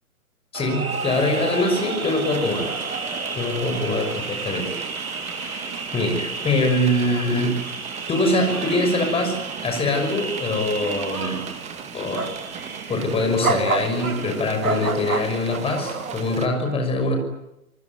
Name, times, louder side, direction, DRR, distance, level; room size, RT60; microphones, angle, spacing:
voice 1, 0.5-2.8 3.3-4.8 5.4-5.7 5.9-7.6 8.1-9.3 9.6-11.4 11.9-12.3 12.9-17.2, left 2 dB, 15° left, 4 dB, 6.0 m, -23 dB
sound 1, 0.5-16.2, right 4 dB, 70° right, 3.4 m, -31 dB
sound 2, 0.9-16.5, right 7 dB, 15° right, 2.1 m, -38 dB
27.5 x 20.5 x 9.6 m, 0.89 s
figure-of-eight pair, 120°, 44 cm